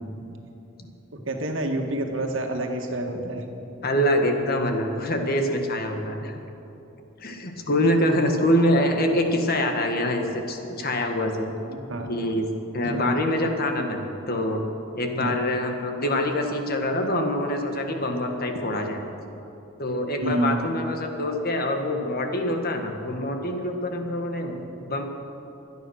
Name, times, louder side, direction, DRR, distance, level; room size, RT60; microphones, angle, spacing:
voice 1, 1.1-3.4 11.7-12.1 12.8-13.2 15.2-15.4 20.2-20.7, right 1 dB, 70° right, 3 dB, 1.9 m, -28 dB
voice 2, 3.8-6.3 7.2-11.5 12.1-12.5 12.7-14.6 14.9-19.0 19.8-25.1, left 1 dB, 50° left, 4 dB, 1.7 m, -25 dB
24.0 x 9.3 x 6.5 m, 3.0 s
head